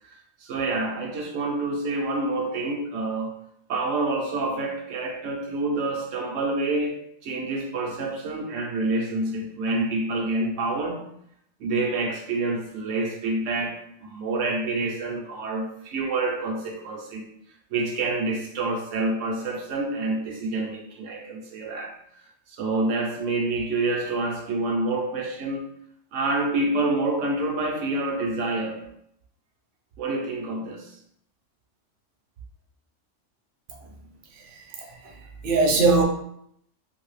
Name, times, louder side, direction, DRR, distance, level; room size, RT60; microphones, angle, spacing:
voice 1, 0.1-3.4 3.7-11.0 11.6-17.3 17.7-21.9 22.5-25.6 26.1-28.8 30.0-30.9, right 2 dB, 80° right, 1 dB, 1.0 m, -27 dB
voice 2, 34.8-35.1 35.4-36.0, right 3 dB, 55° right, 2 dB, 0.7 m, -20 dB
2.8 x 2.6 x 3.2 m, 0.71 s
omnidirectional pair, 1.3 m